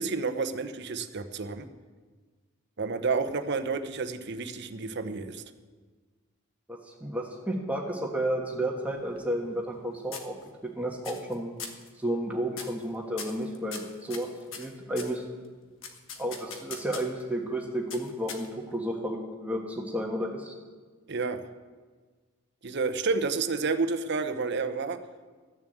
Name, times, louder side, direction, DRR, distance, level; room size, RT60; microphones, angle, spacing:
voice 1, 0.0-1.7 2.8-5.4 21.1-21.4 22.6-25.0, right 4 dB, 60° right, 9 dB, 0.8 m, -30 dB
voice 2, 6.7-10.3 10.8-11.5 12.0-14.3 14.6-15.2 16.2-20.5, right 1 dB, 5° right, -1 dB, 1.4 m, -32 dB
sound 1, 8.9-9.8 10.1-10.7 11.0-11.3 11.6-11.9 12.5-12.8 13.2-15.2 15.8-17.2 17.9-18.7, left 6 dB, 75° left, 1.4 m, -41 dB
14.0 x 7.1 x 7.9 m, 1.5 s
head